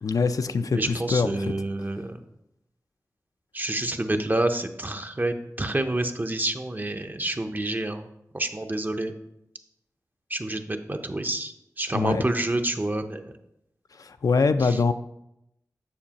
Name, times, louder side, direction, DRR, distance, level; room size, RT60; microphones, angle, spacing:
voice 1, 0.0-1.5 11.9-12.2 14.0-14.9, left 4 dB, 70° left, 9 dB, 0.4 m, -24 dB
voice 2, 0.7-2.2 3.5-8.1 8.3-9.1 10.3-13.3 14.6-14.8, right 1 dB, 30° right, 6 dB, 0.6 m, -28 dB
7.1 x 6.6 x 2.9 m, 0.84 s
cardioid pair, 45°, 6 cm